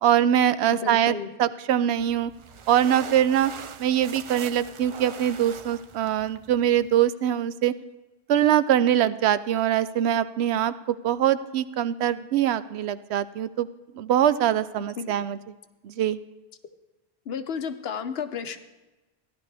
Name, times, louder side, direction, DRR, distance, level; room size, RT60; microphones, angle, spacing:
voice 1, 0.0-2.3 2.7-3.5 3.8-7.7 8.3-13.7 13.9-15.4 15.8-16.2, right 10 dB, 90° right, 14 dB, 0.8 m, -23 dB
voice 2, 0.7-1.3 15.0-15.1 17.3-18.6, left 6 dB, 70° left, 9 dB, 1.0 m, -32 dB
sound 1, 2.0-7.0, right 6 dB, 55° right, 0.3 m, -42 dB
15.0 x 11.0 x 3.3 m, 1.1 s
omnidirectional pair, 1.1 m